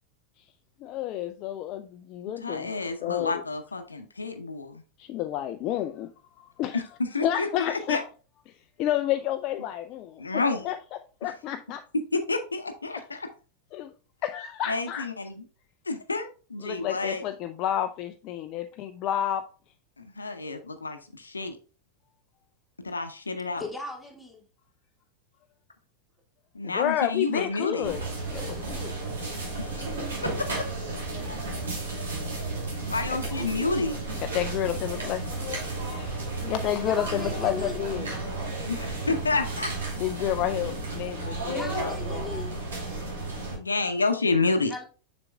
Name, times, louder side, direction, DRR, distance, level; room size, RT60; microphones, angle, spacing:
voice 1, 0.8-2.7 3.0-3.4 5.0-6.1 6.4-6.8 7.2-8.0 8.8-10.8 11.2-11.8 13.0-13.1 13.7-13.9 14.2-15.1 16.6-19.4 26.6-28.0 28.3-28.4 28.7-28.9 33.1-33.2 34.2-38.1 38.5-38.7 40.0-42.2, left 11 dB, 40° left, 0.4 m, -30 dB
voice 2, 2.4-4.8 6.7-7.5 7.9-8.0 10.2-10.7 11.9-13.3 14.7-15.4 15.9-17.2 20.0-21.6 22.8-23.6 26.5-28.0 29.6-29.8 30.2-30.7 32.9-34.0 38.7-39.7 43.5-44.7, left 3 dB, 80° left, 0.7 m, -29 dB
voice 3, 23.6-24.4 27.8-29.1 33.3-33.8 36.8-37.9 41.4-42.5 44.5-44.8, left 2 dB, ahead, 2.2 m, -39 dB
sound 1, 27.8-43.6, right 2 dB, 65° right, 2.5 m, -33 dB
7.5 x 6.1 x 2.3 m
figure-of-eight pair, 90°, 0 cm